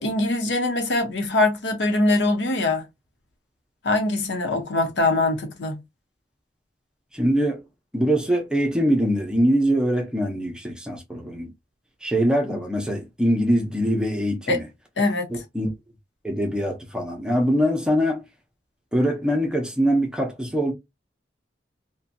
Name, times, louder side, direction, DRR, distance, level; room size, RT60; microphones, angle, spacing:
voice 1, 0.0-2.8 3.8-5.8 14.5-14.6 15.0-15.3, left 2 dB, 80° left, 0.9 m, -22 dB
voice 2, 7.1-7.6 7.9-11.5 12.0-14.7 15.5-15.7 16.2-18.2 18.9-20.7, equal, 5° right, 0.6 m, -23 dB
2.7 x 2.2 x 2.5 m
head